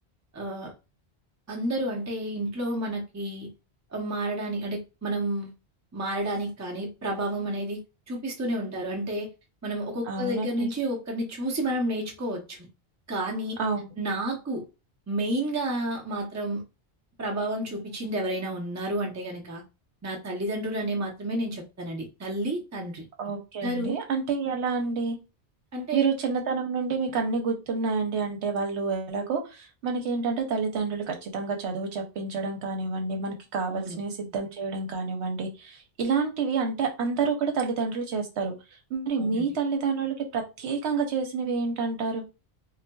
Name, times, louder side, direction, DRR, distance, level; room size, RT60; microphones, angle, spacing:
voice 1, 0.3-0.7 1.5-3.5 3.9-5.5 5.9-7.8 8.1-9.3 9.6-12.6 13.1-13.6 14.0-14.6 15.1-16.6 17.2-19.6 20.0-23.0 23.6-23.9 25.7-26.1 33.7-34.0 39.2-39.5, right 1 dB, 20° right, 0.5 m, -30 dB
voice 2, 10.1-10.7 13.6-13.9 23.2-25.2 25.9-38.5 38.9-42.2, right 4 dB, 80° right, 1.0 m, -28 dB
3.9 x 2.2 x 2.2 m
omnidirectional pair, 1.1 m